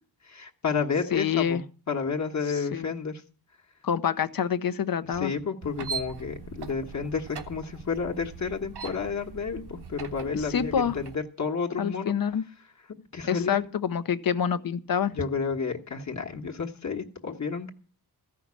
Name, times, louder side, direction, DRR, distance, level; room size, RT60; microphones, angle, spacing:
voice 1, 0.2-1.6 1.9-3.2 5.1-12.2 13.1-13.7 15.1-17.7, left 5 dB, 45° left, 1.4 m, -31 dB
voice 2, 1.1-1.6 2.5-2.9 3.8-5.3 10.3-10.9 11.8-12.4 13.2-15.1, left 8 dB, 60° left, 0.9 m, -27 dB
sound 1, 5.6-11.2, right 6 dB, 85° right, 1.3 m, -40 dB
14.5 x 5.8 x 9.6 m
wide cardioid pair, 165°, 39 cm